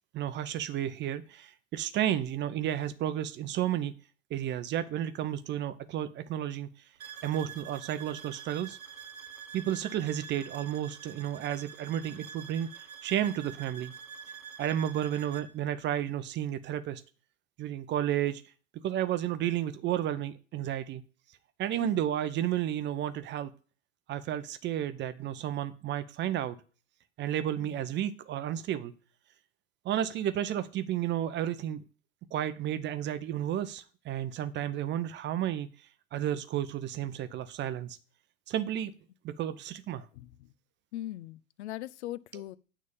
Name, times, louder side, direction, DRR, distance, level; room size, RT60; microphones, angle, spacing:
voice 1, 0.1-3.9 4.3-6.7 7.2-8.8 9.5-12.7 13.0-13.9 14.6-17.0 17.6-18.4 18.8-21.0 21.6-23.5 24.1-26.5 27.2-28.9 29.8-31.8 32.3-35.7 36.1-38.0 38.5-38.9 39.2-40.1, right 11 dB, 25° right, 0.8 m, -32 dB
sound 1, 7.0-15.5, right 7 dB, 75° right, 1.0 m, -46 dB
voice 2, 40.1-40.5 40.9-42.6, left 15 dB, 55° left, 0.7 m, -40 dB
9.4 x 3.8 x 7.0 m
figure-of-eight pair, 90°, 41 cm